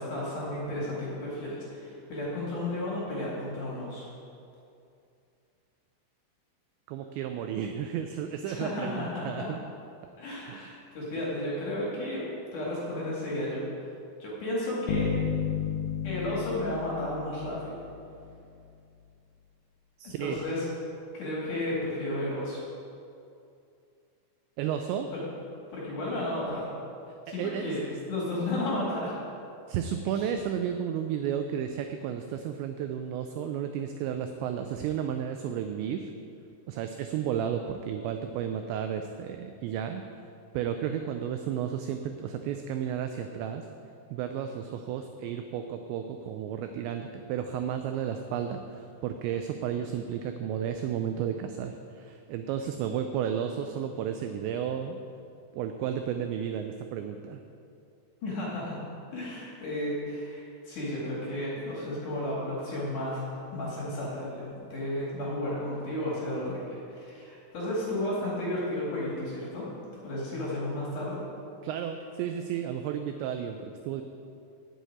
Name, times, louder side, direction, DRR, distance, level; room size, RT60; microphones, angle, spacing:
voice 1, 0.0-4.1 8.5-9.5 10.2-12.3 12.5-13.7 14.2-15.2 16.0-17.8 20.0-20.6 21.1-22.6 25.1-25.2 25.7-26.7 27.3-29.1 30.1-30.3 58.2-58.8 59.1-69.7 70.0-71.2, left 1 dB, 50° left, -5 dB, 2.9 m, -33 dB
voice 2, 6.9-9.6 10.5-10.7 20.0-20.4 24.6-25.1 27.4-27.7 29.7-36.1 36.7-40.0 40.5-43.7 44.1-55.0 55.5-57.4 71.6-74.0, right 8 dB, 85° right, 6 dB, 2.5 m, -33 dB
sound 1, 14.9-18.3, left 7 dB, 85° left, 3.2 m, -32 dB
8.2 x 7.6 x 8.7 m, 2.5 s
omnidirectional pair, 5.7 m